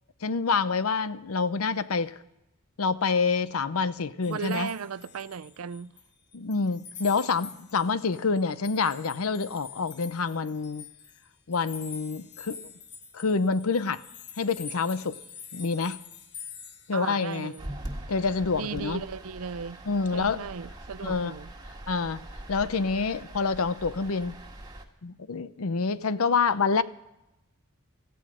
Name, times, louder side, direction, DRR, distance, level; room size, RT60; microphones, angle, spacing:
voice 1, 0.2-2.2 2.8-4.7 6.3-10.9 11.5-12.7 13.1-14.0 14.4-15.2 15.5-16.0 16.9-17.5 18.1-19.0 19.9-20.4 21.0-21.3 21.9-22.2 22.5-24.3 25.0-26.8, left 4 dB, 85° left, 0.7 m, -27 dB
sound 1, 4.2-6.1 6.3-17.7, left 6 dB, 55° left, 1.3 m, -46 dB
voice 2, 4.3-5.9 16.9-17.7 18.5-19.8 20.1-21.5, right 6 dB, 80° right, 0.5 m, -36 dB
sound 2, 17.6-24.9, right 1 dB, 20° right, 1.6 m, -42 dB
17.0 x 14.5 x 5.0 m
head